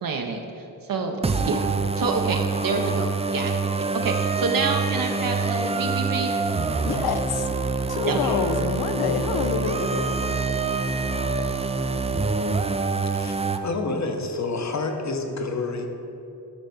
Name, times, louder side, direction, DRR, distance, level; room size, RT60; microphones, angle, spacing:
voice 1, 0.0-3.6 3.9-6.3 8.1-8.4, right 4 dB, 65° right, 3 dB, 0.7 m, -28 dB
sound 1, 1.2-13.6, right 4 dB, 20° right, 0.3 m, -25 dB
voice 2, 6.8-7.5 7.9-10.1, left 6 dB, 80° left, 8 dB, 0.6 m, -27 dB
voice 3, 13.1-15.9, left 3 dB, 45° left, 4 dB, 0.9 m, -28 dB
9.9 x 3.3 x 7.0 m, 2.8 s
wide cardioid pair, 95°, 37 cm